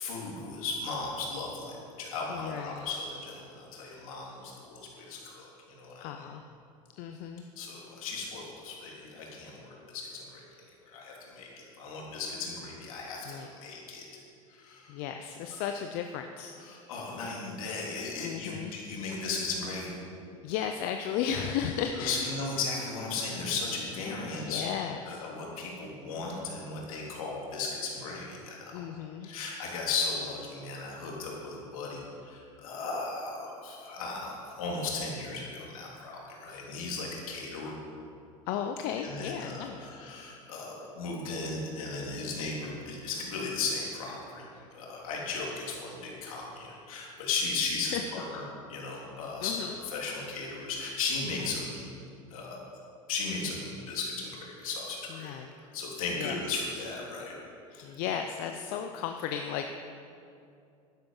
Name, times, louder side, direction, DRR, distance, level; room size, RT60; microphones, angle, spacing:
voice 1, 0.0-6.3 7.6-10.4 10.8-11.5 11.8-14.0 14.5-15.0 15.5-15.6 16.6-20.0 21.9-24.6 25.0-28.8 29.2-37.8 39.0-48.4 48.7-51.9 52.3-52.6 53.1-55.3 55.7-57.3 57.7-57.9, left 4 dB, 80° left, -3 dB, 3.2 m, -36 dB
voice 2, 2.3-2.9 6.0-6.4 7.0-7.5 13.3-13.5 14.9-16.5 18.2-18.8 20.4-22.3 24.3-25.2 28.7-29.3 38.5-39.9 47.9-48.0 49.4-49.7 55.2-55.5 56.2-56.4 57.8-59.7, left 8 dB, 60° left, 6 dB, 0.7 m, -34 dB
12.0 x 10.5 x 5.6 m, 2.5 s
hypercardioid pair, 85°, 18 cm